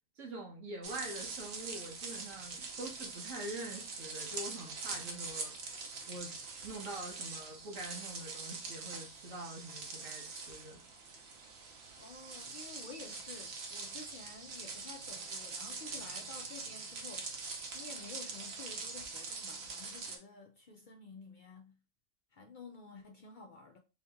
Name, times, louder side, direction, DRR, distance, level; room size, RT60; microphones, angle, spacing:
voice 1, 0.1-5.5 6.0-6.3 6.6-10.8, right 2 dB, 80° right, 1.4 m, -45 dB
sound 1, 0.8-20.2, right 4 dB, 60° right, 1.0 m, -43 dB
voice 2, 12.0-17.3 17.7-21.8 22.3-23.8, left 4 dB, 60° left, 0.5 m, -51 dB
3.1 x 2.9 x 3.4 m
omnidirectional pair, 1.3 m